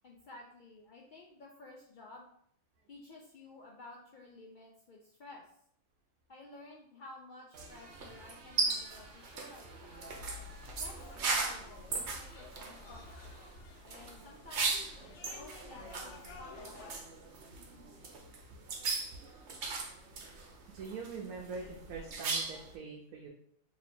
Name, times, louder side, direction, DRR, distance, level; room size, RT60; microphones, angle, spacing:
voice 1, 0.0-2.3 2.9-5.5 6.3-10.0 10.8-14.8 15.3-17.3, left 2 dB, 90° left, -1 dB, 0.4 m, -53 dB
sound 1, 7.5-22.7, right 4 dB, 60° right, 0.9 m, -39 dB
sound 2, 10.2-17.0, left 4 dB, 65° left, 0.8 m, -52 dB
voice 2, 20.7-23.3, right 4 dB, 90° right, -1 dB, 1.1 m, -43 dB
3.1 x 2.8 x 4.2 m, 0.68 s
omnidirectional pair, 1.5 m